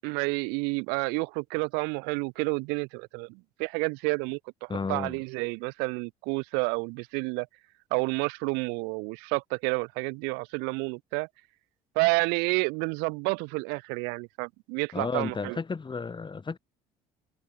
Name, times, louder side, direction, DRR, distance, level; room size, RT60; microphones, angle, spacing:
voice 1, 0.0-7.5 7.9-11.3 12.0-15.6, right 33 dB, 75° right, 7.6 m, -30 dB
voice 2, 4.7-5.2 14.9-16.6, left 4 dB, 30° left, 6.3 m, -33 dB
hypercardioid pair, 70°, 17 cm